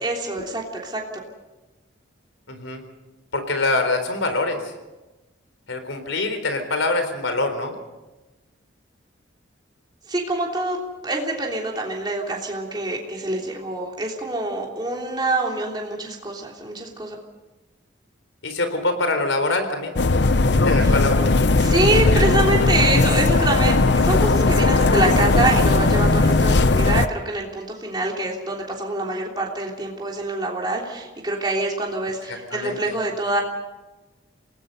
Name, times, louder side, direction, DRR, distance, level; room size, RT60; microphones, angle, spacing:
voice 1, 0.0-1.0 10.1-10.8 11.0-17.2 20.8-21.0 21.6-33.4, right 2 dB, 20° right, -1 dB, 3.2 m, -25 dB
voice 2, 2.5-2.8 3.3-4.6 5.7-7.7 18.4-20.0 20.6-21.2 32.3-32.8, left 2 dB, 80° left, 7 dB, 4.0 m, -24 dB
sound 1, 20.0-27.1, left 3 dB, 60° left, 0.7 m, -17 dB
28.5 x 19.0 x 5.5 m, 1.1 s
head